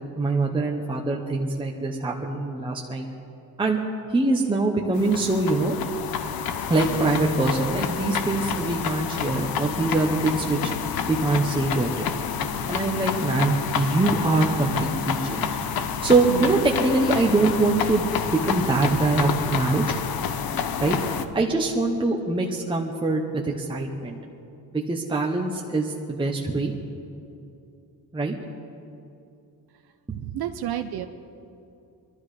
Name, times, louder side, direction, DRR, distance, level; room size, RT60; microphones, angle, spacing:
voice 1, 0.2-3.1 3.6-3.8 4.1-5.7 6.7-10.7 11.1-12.1 12.7-15.6 16.0-19.8 20.8-21.0 21.3-24.2 24.7-26.7 28.1-28.3, right 3 dB, 10° right, -1 dB, 0.9 m, -23 dB
sound 1, 4.9-21.2, left 7 dB, 65° left, 0.9 m, -29 dB
voice 2, 16.3-16.6 30.1-31.1, right 11 dB, 70° right, 7 dB, 0.7 m, -30 dB
22.0 x 12.5 x 4.9 m, 2.7 s
cardioid pair, 155°, 39 cm